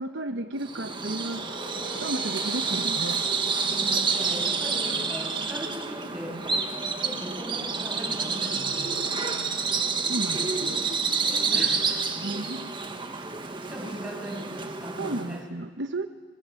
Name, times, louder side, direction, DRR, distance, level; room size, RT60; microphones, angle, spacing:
voice 1, 0.0-1.4 2.0-3.2 10.0-10.8 12.2-12.7 15.0-16.1, right 2 dB, 65° right, 7 dB, 1.1 m, -33 dB
Bird vocalization bird call bird song, 0.6-15.4, right 4 dB, 25° right, 1.5 m, -29 dB
sound 1, 1.2-6.5, right 1 dB, 30° left, 6.4 m, -44 dB
voice 2, 3.7-6.4 7.0-9.1 11.3-12.3 13.4-15.4, equal, 5° right, -2 dB, 7.7 m, -39 dB
24.0 x 24.0 x 7.7 m, 1.4 s
head